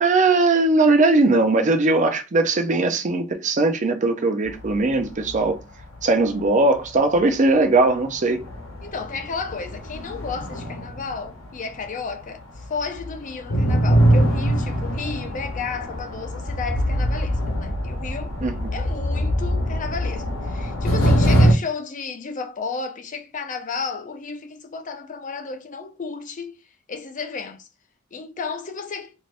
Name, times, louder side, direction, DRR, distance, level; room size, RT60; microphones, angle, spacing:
voice 1, 0.0-5.6 6.0-8.5 18.4-18.6, right 2 dB, 35° right, 0.5 m, -19 dB
sound 1, 4.4-5.4 5.8-6.0 6.8-6.9 7.5-7.6 7.9-12.2 12.5-21.5, equal, 70° left, 0.8 m, -23 dB
voice 2, 8.8-18.4 18.7-26.6 26.9-27.7 28.1-29.1, left 4 dB, 40° left, 0.5 m, -33 dB
2.6 x 2.5 x 3.2 m
head